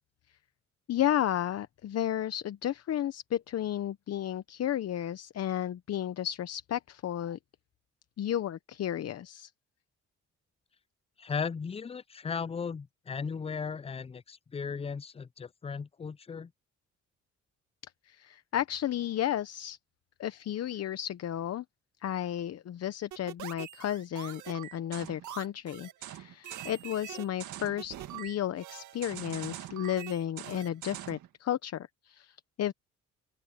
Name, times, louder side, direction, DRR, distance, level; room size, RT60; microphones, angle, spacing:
voice 1, 0.9-7.4 8.2-9.5 18.0-19.8 20.2-21.6 22.0-32.7, left 11 dB, 55° left, 0.8 m, -33 dB
voice 2, 11.2-16.5, left 5 dB, 20° left, 0.4 m, -36 dB
sound 1, 23.1-31.3, right 12 dB, 75° right, 2.0 m, -43 dB
open air
cardioid pair, 90°, 30 cm